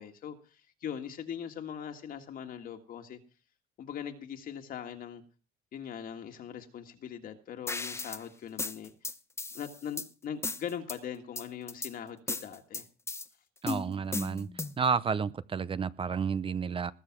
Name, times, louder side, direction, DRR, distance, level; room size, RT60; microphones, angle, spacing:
voice 1, 0.0-3.2 3.8-5.2 5.7-8.9 9.5-12.8, left 8 dB, 60° left, 5 dB, 1.8 m, -41 dB
sound 1, 7.7-8.2 8.6-10.1 10.4-11.0 11.4-11.9 12.3-13.3 13.7-14.9, left 3 dB, 15° left, 0.8 m, -36 dB
voice 2, 13.6-14.5 14.8-16.9, right 6 dB, 30° right, 17 dB, 0.6 m, -31 dB
20.0 x 6.8 x 6.0 m, 0.37 s
cardioid pair, 110°, 17 cm